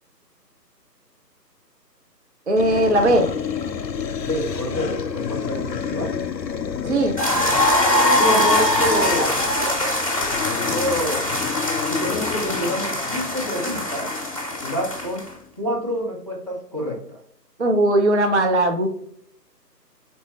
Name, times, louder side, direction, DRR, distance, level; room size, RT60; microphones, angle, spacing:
voice 1, 2.5-3.3 6.8-7.1 9.6-10.0 17.6-18.9, right 1 dB, 45° right, 4 dB, 0.5 m, -19 dB
sound 1, 2.6-15.5, left 7 dB, 85° left, 0.6 m, -30 dB
voice 2, 4.2-6.1 8.2-9.4 10.5-11.3 11.9-14.1 14.6-15.2 15.6-17.2, equal, 20° right, -6 dB, 0.8 m, -27 dB
sound 2, 7.2-15.3, left 1 dB, 20° left, 0.8 m, -22 dB
4.3 x 3.3 x 3.0 m, 0.67 s
figure-of-eight pair, 150°, 50 cm